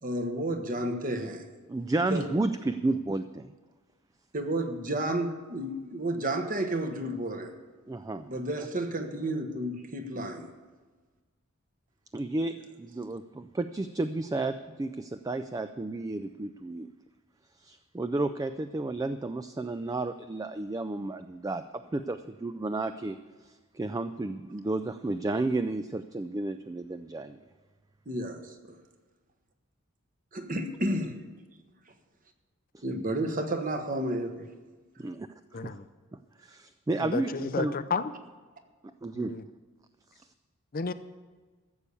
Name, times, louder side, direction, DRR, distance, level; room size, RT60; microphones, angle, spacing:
voice 1, 0.0-1.4 2.1-2.3 4.3-7.5 8.3-10.5 28.1-28.8 30.3-31.2 32.8-34.5, right 1 dB, 40° right, 6 dB, 1.2 m, -31 dB
voice 2, 1.7-3.5 7.9-8.3 10.1-10.2 12.1-16.9 17.6-27.4 32.7-32.8 35.0-35.3 35.6-35.8 36.4-37.7 39.0-39.3 40.1-40.3, right 2 dB, 15° right, 10 dB, 0.3 m, -32 dB
voice 3, 35.5-35.9 37.0-38.1 39.1-39.4 40.7-40.9, left 4 dB, 45° left, 11 dB, 0.5 m, -32 dB
14.5 x 6.9 x 8.4 m, 1.3 s
head